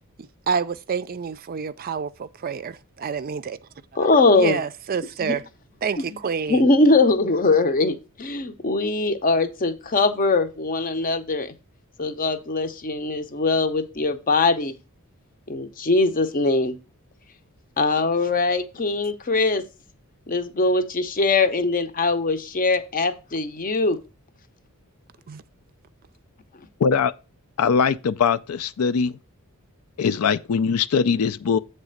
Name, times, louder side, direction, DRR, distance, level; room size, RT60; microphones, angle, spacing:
voice 1, 0.5-3.6 4.0-5.4 5.8-6.7 25.3-25.4, right 6 dB, 40° right, 0.4 m, -28 dB
voice 2, 4.0-4.6 5.2-5.4 6.5-11.5 12.0-14.7 15.5-16.8 17.8-19.6 20.3-24.0, left 3 dB, 40° left, 0.7 m, -21 dB
voice 3, 26.8-27.1 27.6-29.2 30.0-31.6, left 6 dB, 80° left, 0.4 m, -21 dB
8.1 x 3.3 x 6.4 m
head